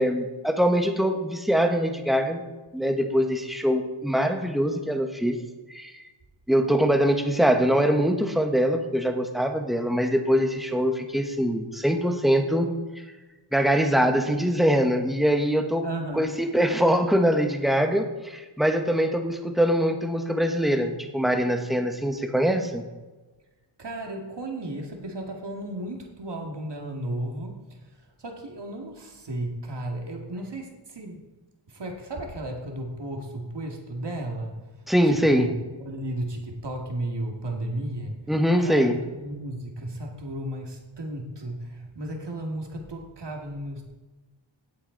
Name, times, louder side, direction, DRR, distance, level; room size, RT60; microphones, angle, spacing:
voice 1, 0.0-2.4 2.7-5.4 5.7-5.9 6.5-12.7 13.5-15.8 16.1-22.8 34.9-35.5 38.3-39.0, equal, ahead, 5 dB, 1.3 m, -23 dB
voice 2, 15.8-16.5 23.8-27.8 28.2-31.2 31.7-34.6 35.0-38.2 38.6-38.9 39.2-43.8, right 1 dB, 60° right, 2 dB, 2.4 m, -34 dB
17.0 x 8.3 x 4.0 m, 1.2 s
wide cardioid pair, 95°, 48 cm